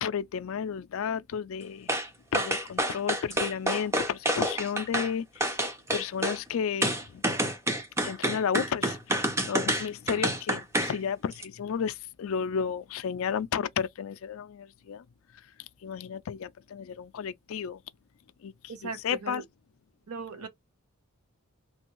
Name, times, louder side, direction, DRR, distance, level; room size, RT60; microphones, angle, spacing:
voice 1, 0.0-1.9 2.3-5.6 5.9-7.2 8.0-15.0 15.8-17.8 18.4-18.5 19.0-19.4, left 7 dB, 65° left, 0.3 m, -32 dB
sound 1, 1.9-2.1 2.3-5.1 5.4-6.4 6.8-11.0 11.3-11.4, right 1 dB, 10° right, 0.5 m, -28 dB
voice 2, 18.7-19.4 20.1-20.5, right 5 dB, 75° right, 0.8 m, -38 dB
3.3 x 2.3 x 2.9 m
head